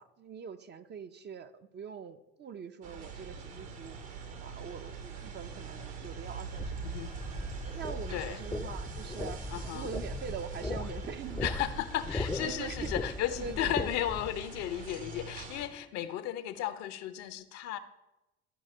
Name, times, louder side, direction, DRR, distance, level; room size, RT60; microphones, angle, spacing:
voice 1, 0.0-4.0 4.3-7.0 7.6-9.4 9.7-11.5 12.4-12.9 13.4-13.9 16.5-16.6, right 7 dB, 35° right, 10 dB, 0.6 m, -43 dB
sound 1, 2.8-15.7, right 5 dB, 65° right, 1.3 m, -43 dB
sound 2, 6.6-14.3, left 2 dB, 10° left, 0.6 m, -38 dB
voice 2, 9.5-9.9 11.4-17.8, left 12 dB, 60° left, 11 dB, 0.8 m, -35 dB
13.0 x 4.8 x 4.2 m, 0.99 s
hypercardioid pair, 65°, 30 cm